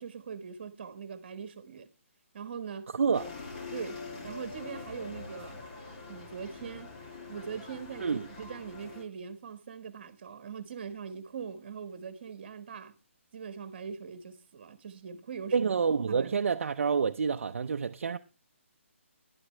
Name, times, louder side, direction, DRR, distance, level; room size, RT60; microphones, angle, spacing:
voice 1, 0.0-1.9 2.3-2.9 3.7-5.6 6.1-6.9 7.3-12.9 13.3-15.7 16.1-16.4, right 6 dB, 40° right, 1.5 m, -42 dB
voice 2, 2.9-3.3 8.0-8.3 15.5-18.2, right 6 dB, 60° right, 0.6 m, -28 dB
sound 1, 3.1-9.0, left 4 dB, 35° left, 2.3 m, -44 dB
11.0 x 11.0 x 3.3 m
hypercardioid pair, 170°, 7 cm